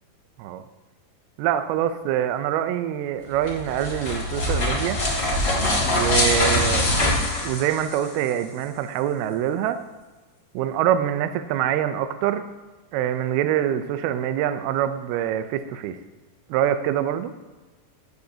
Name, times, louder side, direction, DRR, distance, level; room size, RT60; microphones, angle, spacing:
voice 1, 1.4-5.0 5.9-6.9 7.4-9.8 10.5-12.4 12.9-16.0 16.5-17.3, right 10 dB, 80° right, 9 dB, 2.3 m, -25 dB
sound 1, 3.3-8.3, left 1 dB, 25° left, 2.0 m, -23 dB
14.5 x 9.6 x 2.8 m, 1.2 s
omnidirectional pair, 5.0 m